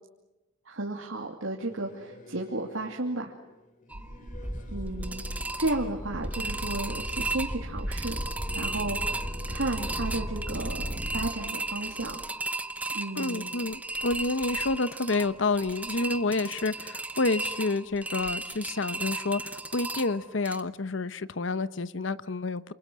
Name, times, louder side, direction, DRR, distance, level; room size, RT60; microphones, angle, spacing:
voice 1, 0.7-3.3 4.7-8.2 8.5-12.2 12.9-13.5, right 2 dB, 85° right, 0 dB, 2.7 m, -33 dB
Singing / Musical instrument, 1.7-13.5, left 1 dB, 40° left, 2.9 m, -51 dB
sound 1, 3.9-20.6, right 2 dB, 5° right, 0.9 m, -35 dB
sound 2, 5.0-11.3, equal, 10° left, 4.5 m, -37 dB
voice 2, 13.2-22.7, left 3 dB, 70° left, 15 dB, 0.9 m, -29 dB
28.0 x 28.0 x 6.2 m, 1.0 s
head